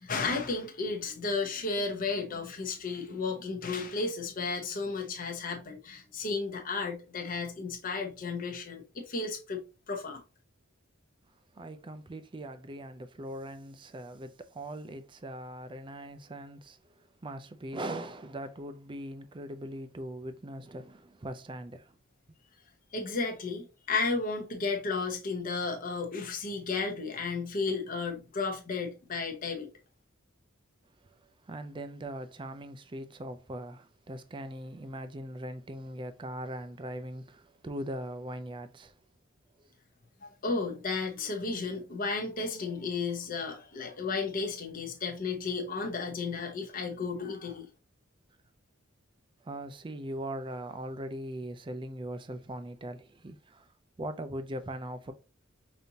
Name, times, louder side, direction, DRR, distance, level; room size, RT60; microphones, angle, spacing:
voice 1, 0.0-9.6 9.9-10.2 22.9-29.7 40.2-47.7, left 4 dB, 45° left, 0.9 m, -33 dB
voice 2, 11.5-22.0 31.4-39.0 39.6-39.7 49.4-53.7 54.0-55.1, right 1 dB, 25° right, 0.4 m, -40 dB
5.1 x 2.7 x 2.8 m
head